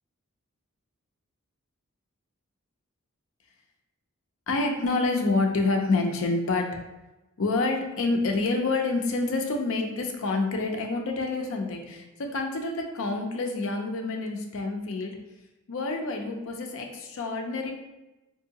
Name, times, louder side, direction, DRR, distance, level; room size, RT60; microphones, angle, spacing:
voice 1, 4.5-6.8 7.4-15.2 15.7-17.7, left 3 dB, 65° left, 3 dB, 0.5 m, -27 dB
3.6 x 2.7 x 2.8 m, 1.0 s
head